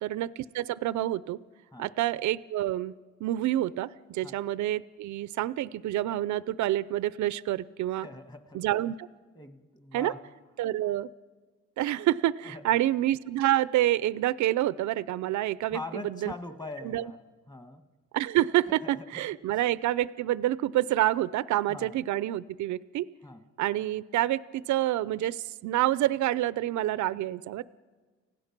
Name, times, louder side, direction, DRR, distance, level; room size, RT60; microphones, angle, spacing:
voice 1, 0.0-1.4 1.8-2.9 3.2-8.1 8.5-9.1 9.9-10.1 10.6-11.1 11.8-16.3 16.8-17.1 18.1-23.1 23.6-27.6, right 14 dB, 70° right, 17 dB, 0.5 m, -28 dB
voice 2, 7.9-8.6 9.3-10.2 12.4-12.6 15.7-17.2 17.5-17.8 18.8-19.2 19.5-19.6 21.7-22.0 23.2-23.5, left 2 dB, 15° left, 8 dB, 1.6 m, -42 dB
30.0 x 16.5 x 6.0 m, 1.4 s
cardioid pair, 90°, 30 cm